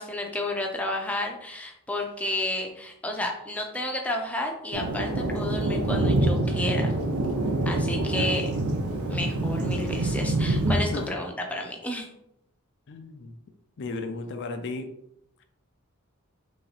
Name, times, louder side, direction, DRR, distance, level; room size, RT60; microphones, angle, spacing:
voice 1, 0.0-6.9 7.7-8.5 9.1-12.1, left 1 dB, 5° left, 1 dB, 0.5 m, -31 dB
Thunder, 4.7-11.1, right 2 dB, 75° right, 0.6 m, -26 dB
voice 2, 10.7-11.0 12.9-13.3 13.8-14.9, left 3 dB, 55° left, 6 dB, 0.4 m, -35 dB
3.3 x 2.9 x 3.9 m, 0.78 s
head